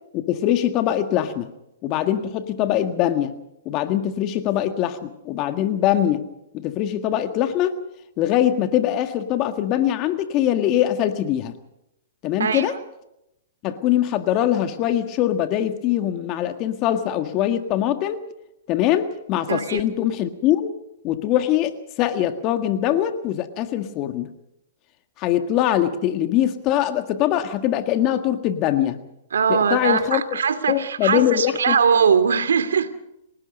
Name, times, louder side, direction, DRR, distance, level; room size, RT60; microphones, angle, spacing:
voice 1, 0.1-1.5 1.8-3.3 3.6-6.2 6.5-7.7 8.2-11.5 12.2-12.7 13.6-18.2 18.7-20.7 21.0-24.3 25.2-29.0 29.5-30.4 30.7-31.7, left 11 dB, 35° left, 8 dB, 1.7 m, -22 dB
voice 2, 12.4-12.8 19.5-19.8 29.3-32.9, right 6 dB, 80° right, 10 dB, 2.5 m, -21 dB
29.5 x 18.5 x 5.4 m, 0.84 s
hypercardioid pair, 130°, 0 cm